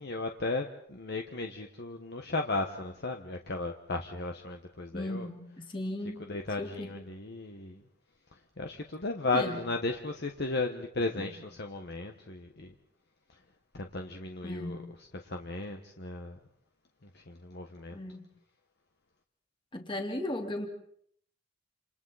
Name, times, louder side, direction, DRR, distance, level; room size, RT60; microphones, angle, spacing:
voice 1, 0.0-5.3 6.3-7.8 8.6-12.7 13.7-14.8 15.2-16.4 17.1-18.0, left 3 dB, 60° left, 4 dB, 1.3 m, -35 dB
voice 2, 4.9-6.2 6.6-6.9 9.3-9.6 11.2-11.4 14.4-14.9 17.9-18.2 19.7-20.7, left 1 dB, 25° left, 3 dB, 2.6 m, -36 dB
29.0 x 28.0 x 4.2 m, 0.66 s
head